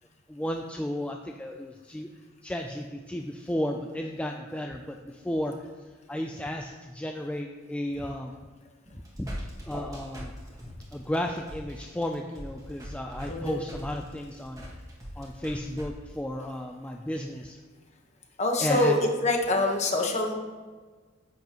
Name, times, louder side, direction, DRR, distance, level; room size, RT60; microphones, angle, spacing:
voice 1, 0.3-2.1 2.4-5.7 6.1-8.3 9.2-9.3 9.7-10.3 10.9-14.6 15.2-17.6 18.6-19.0, left 1 dB, 5° left, 2 dB, 0.3 m, -33 dB
sound 1, 8.8-15.9, equal, 15° right, 1.5 m, -41 dB
voice 2, 13.3-13.6 18.4-20.3, left 2 dB, 35° left, 2 dB, 1.1 m, -25 dB
10.5 x 8.0 x 3.0 m, 1.4 s
head